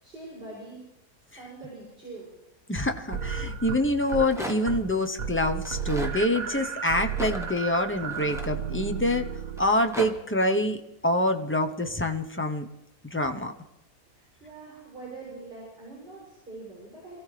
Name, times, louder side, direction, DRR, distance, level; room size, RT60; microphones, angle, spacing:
voice 1, 0.0-0.8 1.4-2.3 14.1-17.2, right 3 dB, 30° right, -6 dB, 6.7 m, -43 dB
voice 2, 2.7-9.3 9.6-12.7 13.1-13.5, left 1 dB, 15° left, 5 dB, 0.4 m, -26 dB
sound 1, 3.1-4.3 4.6-4.9 5.2-9.9, right 7 dB, 60° right, 1.8 m, -33 dB
Rattle, 3.9-4.8 5.6-6.2 7.1-9.0 9.6-10.1, equal, ahead, 1.2 m, -38 dB
27.0 x 15.0 x 3.3 m, 0.92 s
omnidirectional pair, 1.8 m